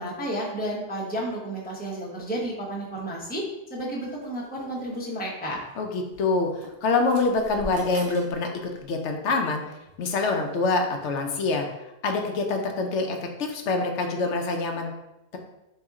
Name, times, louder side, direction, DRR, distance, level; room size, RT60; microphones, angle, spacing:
voice 1, 0.0-3.4 3.7-5.6, right 1 dB, 10° left, -5 dB, 0.7 m, -32 dB
sound 1, 4.2-5.2 6.1-6.2 6.6-8.4 8.7-9.0 9.9-10.2 11.0-11.1, right 2 dB, 80° right, 0.9 m, -43 dB
voice 2, 5.8-9.6 10.0-11.7 12.0-14.9, left 3 dB, 80° left, 3 dB, 0.9 m, -25 dB
4.0 x 2.8 x 3.6 m, 0.93 s
omnidirectional pair, 1.2 m